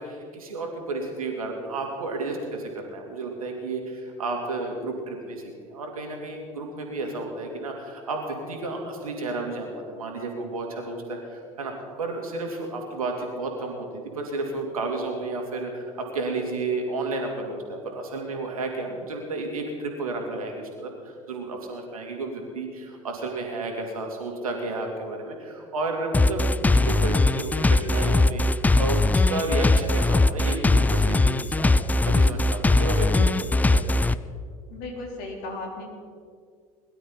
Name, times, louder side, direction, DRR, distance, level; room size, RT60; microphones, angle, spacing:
voice 1, 0.0-11.7 12.0-31.7 32.1-34.0, right 2 dB, 80° right, 2 dB, 2.6 m, -32 dB
sound 1, 26.1-34.1, left 2 dB, 10° left, 0.4 m, -20 dB
voice 2, 34.7-35.8, left 2 dB, 55° left, 0 dB, 3.9 m, -35 dB
21.5 x 12.0 x 4.2 m, 2.1 s
figure-of-eight pair, 70°, 18 cm